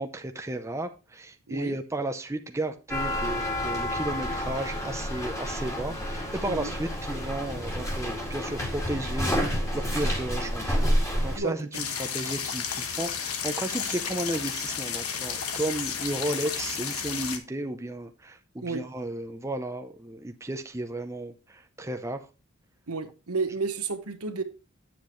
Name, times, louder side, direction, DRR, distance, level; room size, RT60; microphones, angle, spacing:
voice 1, 0.0-22.3, right 1 dB, 15° right, 0.6 m, -34 dB
sound 1, 2.9-11.4, equal, 15° left, 2.2 m, -29 dB
sound 2, 11.7-17.4, left 7 dB, 85° left, 1.2 m, -32 dB
voice 2, 22.9-24.4, right 4 dB, 90° right, 1.2 m, -31 dB
8.7 x 7.6 x 3.1 m
head